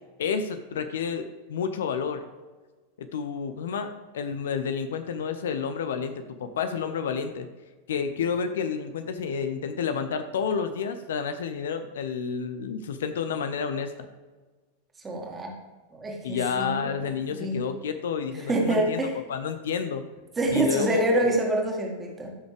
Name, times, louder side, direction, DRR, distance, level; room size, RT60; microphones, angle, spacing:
voice 1, 0.2-2.2 3.0-7.5 7.9-14.1 16.2-19.0 19.3-20.0 20.5-21.3, left 6 dB, 60° left, 9 dB, 0.7 m, -30 dB
voice 2, 15.0-15.5 15.9-17.6 18.3-19.2 20.4-22.3, right 1 dB, 15° right, 0 dB, 2.0 m, -27 dB
14.5 x 6.2 x 3.4 m, 1.3 s
figure-of-eight pair, 90°, 0 cm